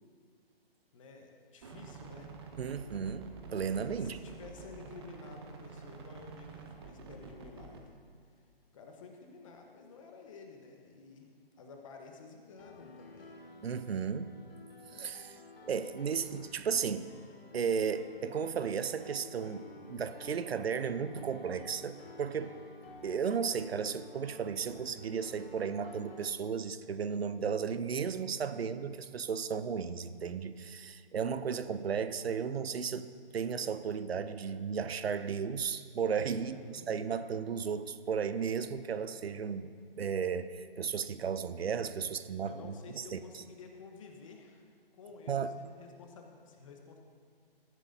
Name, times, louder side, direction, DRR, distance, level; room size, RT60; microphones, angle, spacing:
voice 1, 0.9-2.3 4.0-7.9 8.7-11.3 11.6-13.4 36.3-36.9 42.4-47.0, left 4 dB, 35° left, 3 dB, 1.1 m, -52 dB
sound 1, 1.6-7.8, right 5 dB, 25° right, 0.7 m, -49 dB
voice 2, 2.6-4.2 13.6-14.3 14.9-15.4 15.7-17.1 17.5-22.6 23.0-39.7 40.0-43.2 45.3-45.6, right 6 dB, 80° right, 12 dB, 0.6 m, -34 dB
Piano, 12.6-26.3, left 2 dB, 75° left, 1.4 m, -52 dB
13.5 x 11.0 x 2.7 m, 2.1 s
hypercardioid pair, 155°, 30 cm